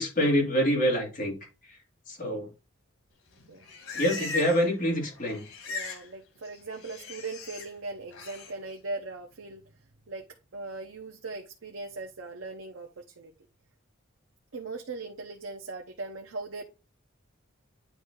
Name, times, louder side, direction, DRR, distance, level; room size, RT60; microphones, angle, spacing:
voice 1, 0.0-1.8 2.1-2.5 3.9-5.4, equal, 40° left, 2.4 m, -26 dB
Livestock farm animals working animals, 3.3-4.8 5.0-6.1 6.3-7.7 8.1-8.5, left 2 dB, 90° left, 1.8 m, -38 dB
voice 2, 5.7-10.2 10.5-13.3 14.5-16.6, right 3 dB, 70° right, 0.8 m, -39 dB
9.4 x 3.2 x 3.7 m
head